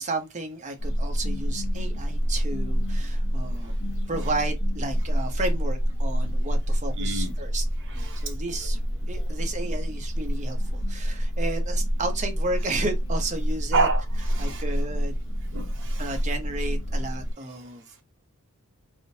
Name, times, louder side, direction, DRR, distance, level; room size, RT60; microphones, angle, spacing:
voice 1, 0.0-3.7 4.1-7.6 7.9-8.8 9.1-13.9 14.4-15.2 16.0-18.0, right 2 dB, 35° right, 0.8 m, -33 dB
sound 1, 0.8-17.3, equal, 55° left, 1.0 m, -27 dB
voice 2, 7.0-7.3 7.9-8.2 13.7-14.6 15.5-16.2, right 3 dB, 60° right, 0.9 m, -29 dB
3.6 x 2.5 x 2.7 m
head